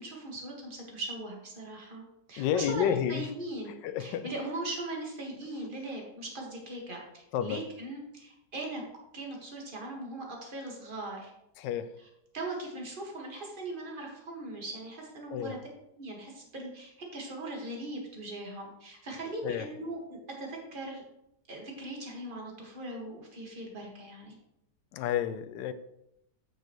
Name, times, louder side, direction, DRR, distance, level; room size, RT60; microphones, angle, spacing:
voice 1, 0.0-8.8 9.1-11.3 12.3-15.6 16.0-21.0 21.5-24.3, right 2 dB, 30° right, 1.7 m, -39 dB
voice 2, 2.4-3.3 3.7-4.3 7.3-7.7 11.6-12.0 15.3-15.6 19.4-19.7 24.9-25.7, left 10 dB, 80° left, 1.2 m, -31 dB
8.6 x 6.6 x 3.0 m
omnidirectional pair, 2.0 m